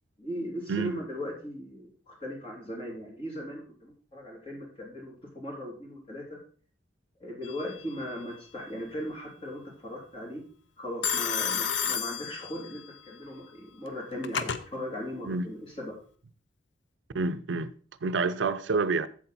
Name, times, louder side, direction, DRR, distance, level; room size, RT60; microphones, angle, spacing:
voice 1, 0.2-6.4 7.2-10.4 10.8-16.0, equal, 30° left, 3.3 m, -38 dB
Telephone, 7.4-8.0 11.0-12.9 13.9-14.6, left 7 dB, 80° left, 0.7 m, -31 dB
voice 2, 17.1-17.7 18.0-19.1, right 4 dB, 80° right, 0.5 m, -28 dB
8.0 x 7.4 x 4.3 m
head